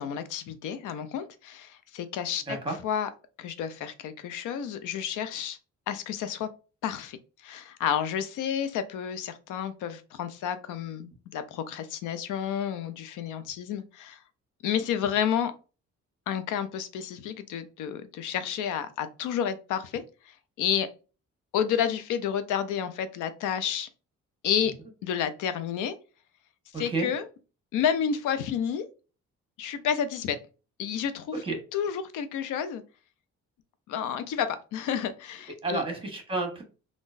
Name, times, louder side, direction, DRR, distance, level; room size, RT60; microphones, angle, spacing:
voice 1, 0.0-2.6 2.8-3.1 3.4-5.6 5.9-6.5 6.8-14.2 14.6-15.5 16.3-20.0 20.6-20.9 21.5-23.9 24.4-24.7 25.0-25.9 26.8-27.2 27.7-28.8 29.6-30.4 30.8-31.4 31.7-32.8 33.9-35.8, left 8 dB, 85° left, 11 dB, 0.6 m, -30 dB
voice 2, 26.7-27.1 31.3-31.6 35.6-36.6, right 3 dB, 15° right, 3 dB, 1.3 m, -30 dB
3.7 x 2.4 x 2.5 m, 0.33 s
cardioid pair, 90°, 30 cm